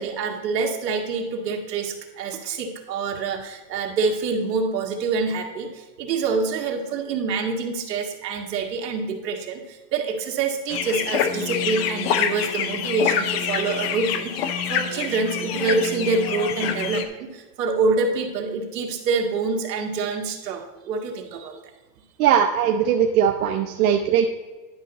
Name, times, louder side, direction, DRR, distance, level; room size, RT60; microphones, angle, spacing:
voice 1, 0.0-21.6, right 4 dB, 75° right, 2 dB, 1.9 m, -26 dB
sound 1, 10.7-17.0, left 8 dB, 40° left, 0.6 m, -26 dB
voice 2, 22.2-24.3, right 8 dB, 60° right, 3 dB, 0.8 m, -19 dB
11.0 x 5.8 x 4.0 m, 1.2 s
supercardioid pair, 165°, 49 cm